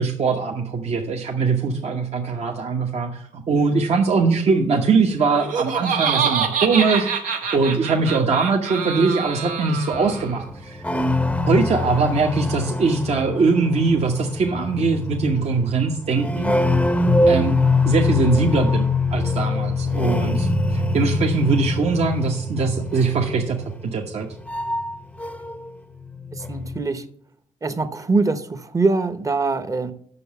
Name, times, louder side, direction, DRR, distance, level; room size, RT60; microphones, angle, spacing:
voice 1, 0.0-7.1 7.5-10.8 11.5-16.5 17.3-17.6 17.8-23.6 23.9-24.3, right 4 dB, 55° right, 0 dB, 1.1 m, -21 dB
Laughter, 5.2-10.4, right 6 dB, 80° right, 1.3 m, -26 dB
sound 1, 9.9-25.7 26.0-26.8, left 2 dB, 10° left, 0.7 m, -24 dB
voice 2, 26.3-27.0 27.6-29.9, right 3 dB, 25° right, 11 dB, 0.9 m, -23 dB
6.9 x 6.4 x 6.9 m, 0.63 s
cardioid pair, 80°, 13 cm